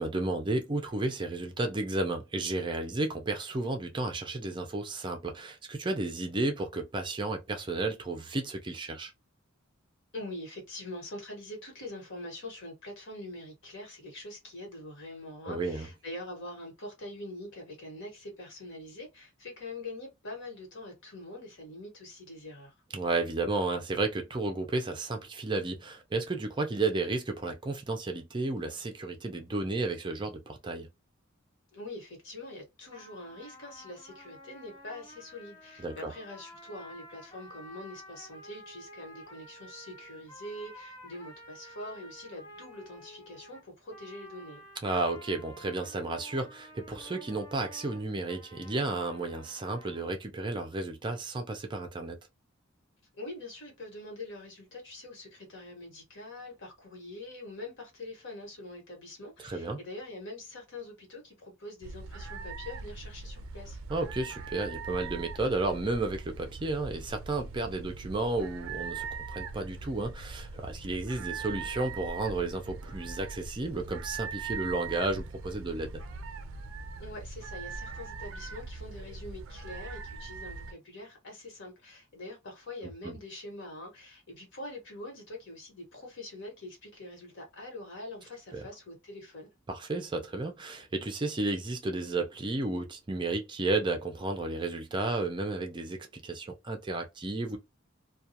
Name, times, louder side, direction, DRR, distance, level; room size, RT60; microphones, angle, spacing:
voice 1, 0.0-9.1 15.5-15.9 22.9-30.9 35.8-36.1 44.8-52.2 59.4-59.8 63.9-76.0 82.8-83.2 88.5-88.7 89.7-97.6, right 2 dB, 25° right, 0.4 m, -32 dB
voice 2, 10.1-22.7 31.7-44.6 53.2-63.8 77.0-89.5, left 1 dB, 60° left, 1.2 m, -44 dB
sound 1, 32.9-50.1, equal, 20° left, 0.7 m, -51 dB
sound 2, 61.8-80.7, right 4 dB, 80° right, 0.4 m, -41 dB
2.3 x 2.2 x 2.7 m
head